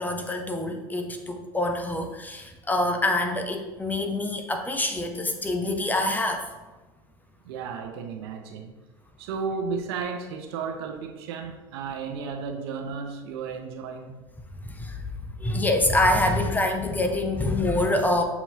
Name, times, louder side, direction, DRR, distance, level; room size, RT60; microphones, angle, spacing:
voice 1, 0.0-6.5 14.6-15.0 15.4-18.2, left 1 dB, 15° left, 5 dB, 0.6 m, -25 dB
voice 2, 7.4-8.7 9.2-14.2, right 5 dB, 80° right, 5 dB, 0.6 m, -33 dB
6.9 x 2.8 x 2.7 m, 1.2 s
supercardioid pair, 95°, 13 cm